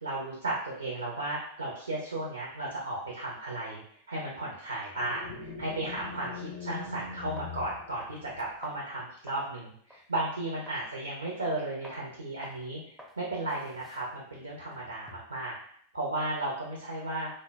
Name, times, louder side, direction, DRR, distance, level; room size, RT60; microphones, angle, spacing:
voice 1, 0.0-3.8 4.1-12.8 13.2-15.6 15.9-17.3, right 2 dB, 80° right, -3 dB, 0.5 m, -34 dB
sound 1, 4.9-8.6, left 5 dB, 60° left, 0.4 m, -42 dB
sound 2, 6.1-6.2 6.7-6.9 7.4-7.6 8.0-9.5 9.9-10.0 10.7-10.9 11.3-11.5 11.8-12.0 12.4-12.6 13.0-13.2 13.5-15.4, equal, 5° right, 0.4 m, -50 dB
2.1 x 2.0 x 3.1 m, 0.63 s
figure-of-eight pair, 90°, 0 cm